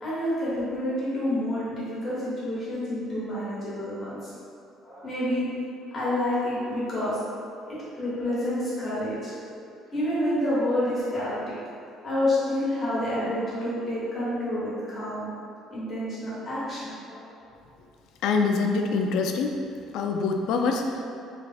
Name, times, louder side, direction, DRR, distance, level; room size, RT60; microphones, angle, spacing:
voice 1, 0.0-4.3 4.8-5.5 5.9-7.2 7.7-9.3 9.9-11.4 12.0-15.2 15.7-17.3, left 1 dB, 25° left, -10 dB, 1.3 m, -28 dB
voice 2, 18.2-19.6 19.9-21.0, left 4 dB, 65° left, 3 dB, 0.3 m, -25 dB
3.3 x 2.3 x 4.0 m, 2.5 s
cardioid pair, 155°, 0 cm